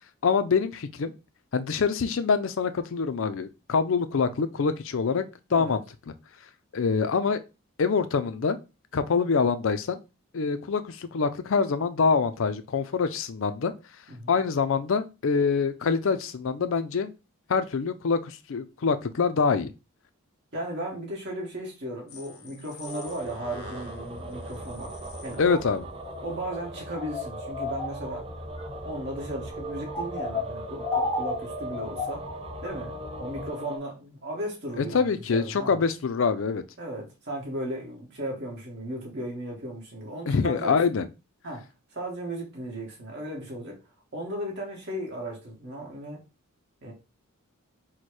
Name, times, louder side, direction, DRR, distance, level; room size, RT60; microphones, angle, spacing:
voice 1, 0.2-1.1 1.5-5.2 5.5-5.8 6.7-7.4 7.8-8.6 8.9-10.0 10.3-13.7 14.3-17.1 17.5-19.7 25.4-25.8 34.8-36.6 40.3-41.1, left 5 dB, 60° left, 0.4 m, -25 dB
voice 2, 20.5-24.9 25.2-25.6 26.2-28.2 28.8-32.2 32.6-32.9 33.2-35.8 36.8-40.8 41.4-41.7 41.9-43.8 44.1-46.2 46.8-46.9, right 1 dB, 55° right, 1.6 m, -36 dB
sound 1, 22.1-25.7, left 5 dB, 90° left, 0.9 m, -48 dB
sound 2, 22.9-33.8, right 2 dB, 25° right, 0.4 m, -40 dB
sound 3, 23.1-33.5, left 3 dB, 25° left, 0.7 m, -36 dB
4.3 x 2.2 x 4.6 m
head